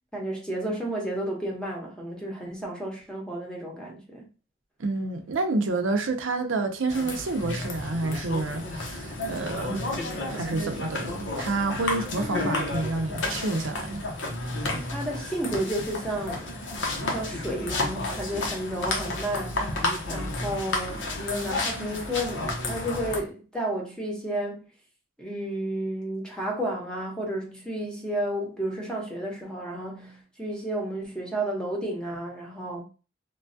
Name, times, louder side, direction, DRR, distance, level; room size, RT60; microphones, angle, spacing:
voice 1, 0.1-4.3 14.7-16.5 17.0-24.6 25.2-32.8, right 1 dB, 5° left, 0.7 m, -32 dB
voice 2, 4.8-9.9 10.3-14.0, right 3 dB, 90° right, 0.6 m, -29 dB
sound 1, 6.9-23.2, left 2 dB, 70° left, 0.8 m, -31 dB
3.1 x 2.2 x 2.6 m
head